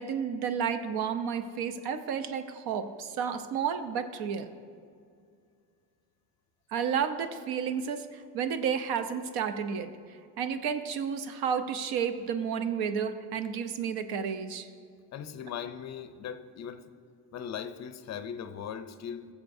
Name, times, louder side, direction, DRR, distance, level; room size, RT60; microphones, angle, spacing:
voice 1, 0.0-4.5 6.7-9.9 10.4-14.7, right 7 dB, 65° right, 10 dB, 0.8 m, -31 dB
voice 2, 15.1-16.8 17.3-19.3, left 8 dB, 40° left, 11 dB, 0.5 m, -39 dB
18.0 x 7.2 x 2.6 m, 2.2 s
cardioid pair, 125°, 40 cm